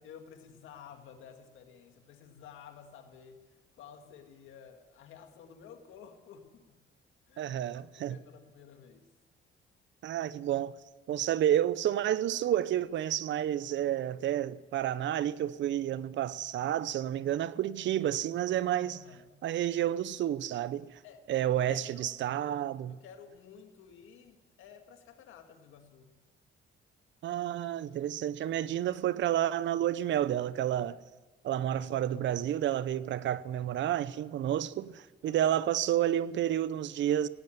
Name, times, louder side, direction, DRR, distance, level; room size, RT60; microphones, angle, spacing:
voice 1, 0.0-6.8 7.3-9.1 18.8-19.3 21.0-21.2 21.6-26.2 35.2-35.5, left 7 dB, 85° left, 1.9 m, -53 dB
voice 2, 7.4-8.2 10.0-10.7 11.1-19.0 19.4-21.0 21.3-23.0 27.2-31.0 31.4-37.3, right 11 dB, 70° right, 0.6 m, -30 dB
16.5 x 9.7 x 9.0 m
cardioid pair, 90°, 20 cm